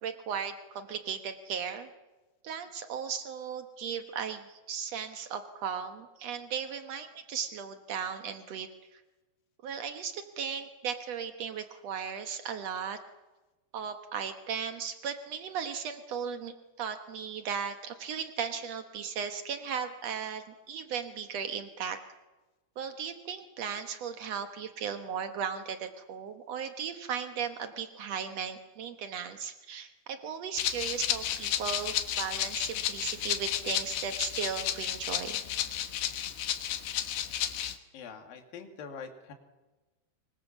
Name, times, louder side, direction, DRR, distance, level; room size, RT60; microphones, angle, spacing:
voice 1, 0.0-1.9 2.4-9.0 9.6-13.0 13.7-22.0 22.8-35.4, right 7 dB, 85° right, 7 dB, 1.4 m, -36 dB
Rattle (instrument), 30.6-37.8, left 11 dB, 75° left, 3.4 m, -32 dB
voice 2, 37.9-39.3, left 6 dB, 60° left, 4 dB, 4.0 m, -44 dB
25.0 x 23.0 x 7.3 m, 1.1 s
omnidirectional pair, 4.8 m